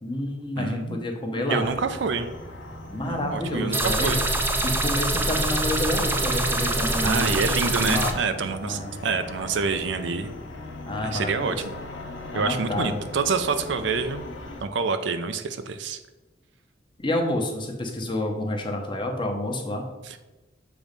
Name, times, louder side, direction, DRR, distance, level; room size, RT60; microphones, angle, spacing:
voice 1, 0.0-1.6 2.9-4.1 4.6-7.4 7.8-8.2 8.6-9.0 10.9-11.6 12.3-13.0 17.0-19.8, left 1 dB, 25° left, 2 dB, 0.9 m, -29 dB
voice 2, 0.6-1.0 1.4-2.3 3.1-4.2 7.0-10.4 11.0-11.8 12.3-14.2 14.6-16.0 20.0-20.2, right 4 dB, 75° right, 9 dB, 0.5 m, -27 dB
sound 1, 1.5-14.6, left 2 dB, 85° left, 1.0 m, -39 dB
sound 2, 3.7-8.1, right 2 dB, 10° right, 0.5 m, -25 dB
6.9 x 3.1 x 5.1 m, 1.1 s
head